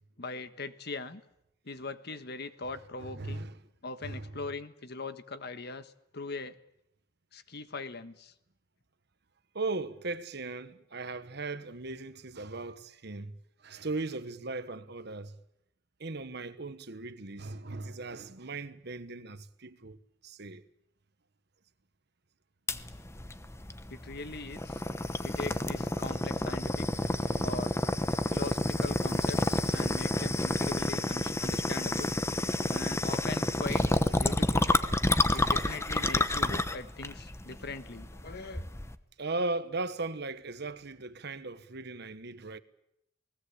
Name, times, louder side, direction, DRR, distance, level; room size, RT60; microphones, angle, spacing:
voice 1, 0.2-1.2 1.6-3.5 3.8-6.6 7.3-8.3 23.9-24.8 25.2-26.9 27.4-27.7 28.3-32.2 32.7-34.7 35.3-38.7, left 3 dB, 60° left, 1.4 m, -41 dB
voice 2, 3.0-3.6 4.0-4.3 9.5-13.4 13.6-15.4 16.0-20.6 27.0-27.6 28.2-28.3 29.6-30.1 32.6-32.9 33.7-33.9 35.1-35.5 39.2-42.6, right 3 dB, 60° right, 1.3 m, -38 dB
sound 1, 22.7-39.0, left 1 dB, 15° left, 1.0 m, -29 dB
28.5 x 19.5 x 8.5 m
head